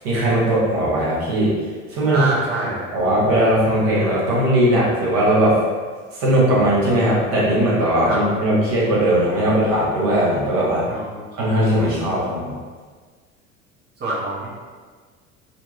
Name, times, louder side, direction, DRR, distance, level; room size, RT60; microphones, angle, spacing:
voice 1, 0.0-1.5 1.9-2.3 2.9-5.6 6.2-10.8 11.3-12.5, right 1 dB, 55° right, -6 dB, 1.1 m, -18 dB
voice 2, 2.1-2.9 8.1-8.2 10.8-11.2 14.0-14.5, right 2 dB, 20° right, -7 dB, 0.8 m, -26 dB
2.7 x 2.5 x 2.5 m, 1.5 s
figure-of-eight pair, 65°, 44 cm